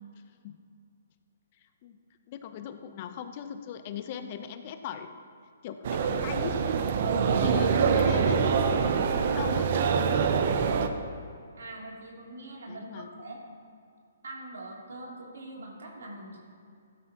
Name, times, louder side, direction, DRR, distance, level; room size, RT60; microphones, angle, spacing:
voice 1, 2.3-5.1 5.6-6.6 7.1-8.6 9.1-9.7 12.7-13.1, left 8 dB, 40° left, 8 dB, 0.8 m, -39 dB
sound 1, 5.8-10.9, right 6 dB, 50° right, 0.9 m, -25 dB
voice 2, 11.5-13.6 14.2-16.4, right 2 dB, 75° right, -2 dB, 3.2 m, -43 dB
16.0 x 12.0 x 3.1 m, 2.4 s
hypercardioid pair, 135°, 0 cm